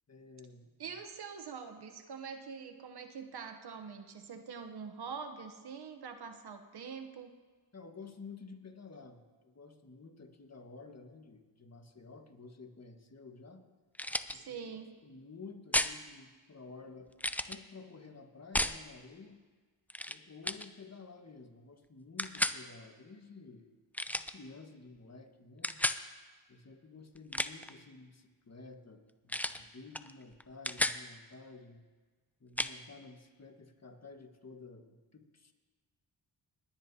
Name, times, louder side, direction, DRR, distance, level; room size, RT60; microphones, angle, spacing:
voice 1, 0.1-0.7 7.7-13.7 14.3-19.4 20.1-23.7 24.1-25.8 26.5-31.8 32.4-35.5, left 4 dB, 35° left, 4 dB, 1.6 m, -52 dB
voice 2, 0.8-7.3 14.3-14.9, right 6 dB, 60° right, 7 dB, 1.0 m, -44 dB
sound 1, 13.9-14.4 15.7-16.0 17.2-17.6 18.5-18.8 19.9-20.2 20.4-20.7 22.2-22.6 23.9-24.3 25.6-26.0 27.2-27.7 29.3-29.6 29.9-30.1 30.4-31.0 32.6-32.7, left 1 dB, 5° left, 0.4 m, -32 dB
20.5 x 10.0 x 2.8 m, 1.4 s
supercardioid pair, 50°, 43 cm